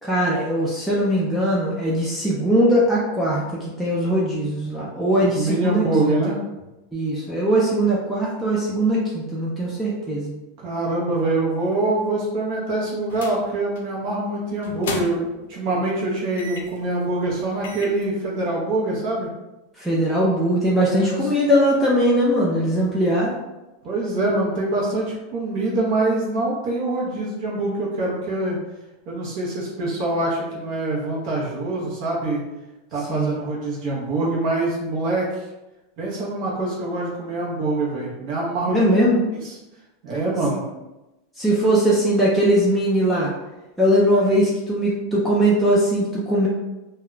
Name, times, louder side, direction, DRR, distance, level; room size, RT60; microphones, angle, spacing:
voice 1, 0.0-6.2 6.9-10.3 19.8-23.4 33.1-33.4 38.7-39.2 41.4-43.3 43.8-46.5, equal, ahead, -6 dB, 0.3 m, -20 dB
voice 2, 5.3-6.4 10.6-19.3 20.9-21.2 23.8-28.6 29.1-32.4 32.9-35.4 36.0-38.9 40.0-40.6, right 2 dB, 40° right, -5 dB, 0.6 m, -24 dB
sound 1, 13.1-13.4 13.8-14.0 14.6-15.4 16.4-16.8 17.3-17.4 17.6-18.0, left 3 dB, 75° left, 0.4 m, -34 dB
2.2 x 2.1 x 3.7 m, 1.0 s
supercardioid pair, 180°, 0 cm